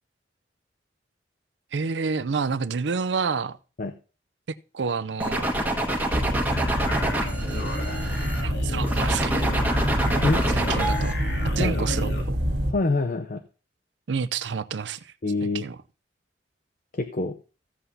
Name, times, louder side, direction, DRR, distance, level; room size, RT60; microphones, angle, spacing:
voice 1, 1.7-3.6 4.7-5.5 8.4-9.5 10.5-11.2 11.6-12.4 14.1-15.1 15.5-15.8, right 5 dB, 85° right, 0.5 m, -29 dB
sound 1, 5.2-8.4 8.8-11.1, right 1 dB, 10° right, 1.5 m, -27 dB
sound 2, 6.1-12.7, equal, 70° right, 2.1 m, -27 dB
sound 3, 6.5-12.3, left 1 dB, 65° left, 2.6 m, -34 dB
voice 2, 12.7-13.4 15.2-15.7 16.9-17.4, left 2 dB, 50° left, 0.6 m, -26 dB
15.0 x 7.8 x 2.7 m
head